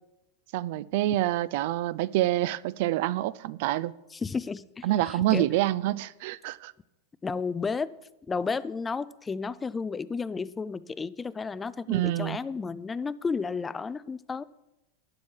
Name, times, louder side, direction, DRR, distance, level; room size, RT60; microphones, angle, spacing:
voice 1, 0.5-3.9 4.8-6.7 11.9-12.4, right 15 dB, 55° right, 0.4 m, -27 dB
voice 2, 4.1-5.5 7.2-7.9 8.3-14.4, left 4 dB, 10° left, 0.3 m, -32 dB
11.5 x 11.5 x 4.8 m
supercardioid pair, 160°, 0 cm